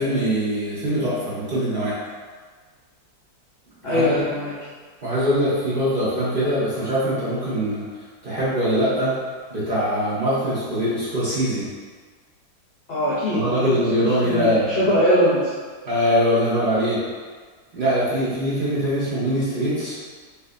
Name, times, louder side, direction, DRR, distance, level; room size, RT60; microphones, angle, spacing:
voice 1, 0.0-2.0 3.8-4.2 5.0-7.8 8.2-9.1 9.5-11.6 13.3-14.8 15.8-17.0 17.7-20.0, equal, 30° right, -12 dB, 1.3 m, -22 dB
voice 2, 3.8-4.5 12.9-13.7 14.2-15.4, equal, 60° left, -9 dB, 0.6 m, -21 dB
3.6 x 3.2 x 2.6 m, 1.5 s
omnidirectional pair, 2.0 m